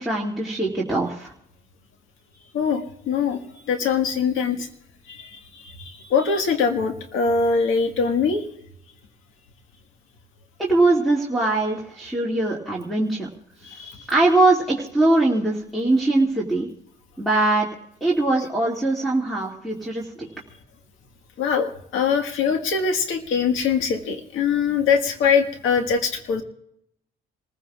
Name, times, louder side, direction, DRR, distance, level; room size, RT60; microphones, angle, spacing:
voice 1, 0.0-1.3 10.6-13.3 13.6-16.7 17.2-17.7 18.0-20.3, right 2 dB, ahead, -7 dB, 2.3 m, -22 dB
voice 2, 2.5-3.4 3.7-4.7 5.1-8.4 13.7-14.0 21.4-26.4, left 5 dB, 85° left, 5 dB, 1.7 m, -23 dB
27.5 x 15.5 x 2.4 m, 0.76 s
cardioid pair, 90°, 20 cm